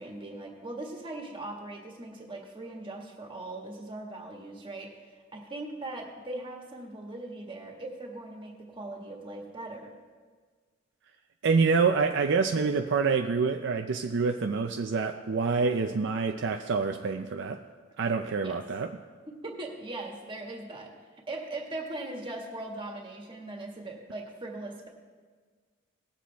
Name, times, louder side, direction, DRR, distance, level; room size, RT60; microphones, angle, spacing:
voice 1, 0.0-4.9 5.3-9.9 18.4-18.6 19.4-20.9 21.3-24.9, right 2 dB, 25° right, 0 dB, 1.8 m, -40 dB
voice 2, 11.4-17.6 18.0-19.0, right 5 dB, 60° right, 5 dB, 0.5 m, -27 dB
19.0 x 7.5 x 3.4 m, 1.5 s
head